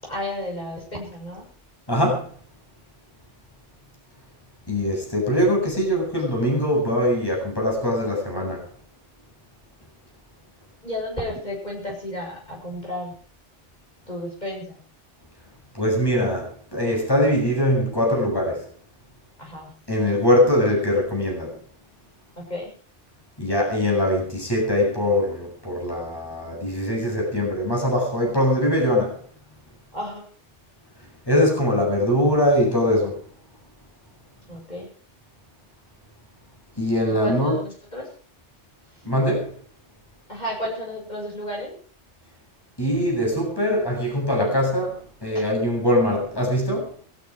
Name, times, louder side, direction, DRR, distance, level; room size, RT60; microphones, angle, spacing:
voice 1, 0.0-1.5 10.8-13.1 14.1-14.8 19.4-19.7 22.4-22.7 29.9-30.3 34.5-34.9 37.2-38.1 38.9-39.0 40.3-41.7 45.3-45.5, left 1 dB, 35° left, 7.6 m, -32 dB
voice 2, 1.9-2.3 4.7-8.7 15.7-18.7 19.9-21.6 23.4-29.2 31.3-33.2 36.8-37.6 39.0-39.5 42.8-46.9, left 1 dB, 20° left, 7.6 m, -22 dB
18.5 x 15.5 x 4.9 m
omnidirectional pair, 1.2 m